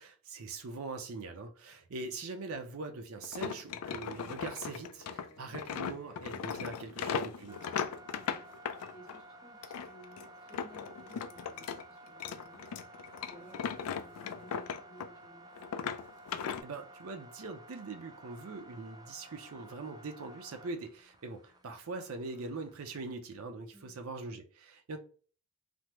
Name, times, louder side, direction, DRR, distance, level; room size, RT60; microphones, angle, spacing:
voice 1, 0.0-7.7 16.6-25.0, right 3 dB, 70° right, 0.5 m, -42 dB
sound 1, 3.2-9.2 9.6-11.8 12.1-15.2 15.5-16.6, left 7 dB, 90° left, 0.3 m, -38 dB
Wind instrument woodwind instrument, 3.4-7.4, right 1 dB, 75° left, 1.0 m, -60 dB
sound 2, 5.6-23.2, right 1 dB, 15° right, 0.3 m, -55 dB
voice 2, 8.1-8.5 8.9-12.8 13.3-15.5 23.7-24.0, equal, 20° left, 1.0 m, -57 dB
3.4 x 2.0 x 2.9 m
head